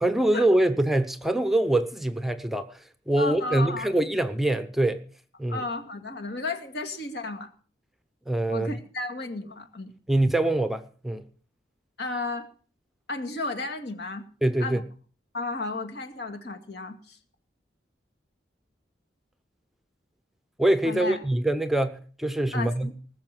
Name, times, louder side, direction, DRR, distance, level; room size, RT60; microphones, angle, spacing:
voice 1, 0.0-2.7 3.1-5.0 5.4-5.6 8.3-8.7 10.1-11.2 14.4-14.8 20.6-22.9, right 1 dB, ahead, 0.7 m, -24 dB
voice 2, 3.2-3.9 5.5-7.5 8.5-9.9 12.0-12.5 13.1-14.2 14.6-14.8 15.3-17.2 20.8-21.2 22.5-22.9, left 3 dB, 60° left, 2.2 m, -33 dB
20.0 x 6.9 x 7.7 m
head